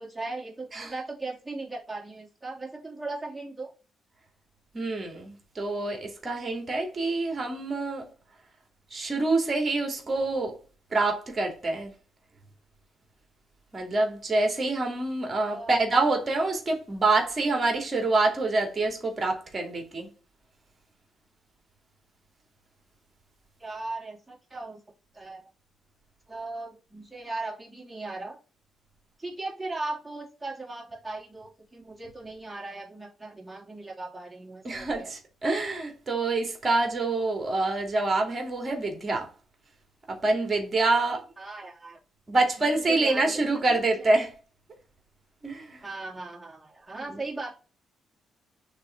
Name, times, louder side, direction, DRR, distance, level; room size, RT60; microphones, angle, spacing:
voice 1, 0.0-3.7 15.4-15.7 23.6-24.8 25.1-25.5 26.3-28.4 29.2-35.1 41.4-42.0 42.7-43.7 44.0-44.1 45.8-47.5, right 2 dB, 15° right, 3.0 m, -38 dB
voice 2, 4.7-8.1 8.9-10.6 10.9-11.9 13.7-20.1 34.6-39.3 40.1-41.2 42.3-44.3 45.4-45.8 47.1-47.2, right 2 dB, 35° right, 2.6 m, -26 dB
6.6 x 3.4 x 4.5 m
supercardioid pair, 60°, 0 cm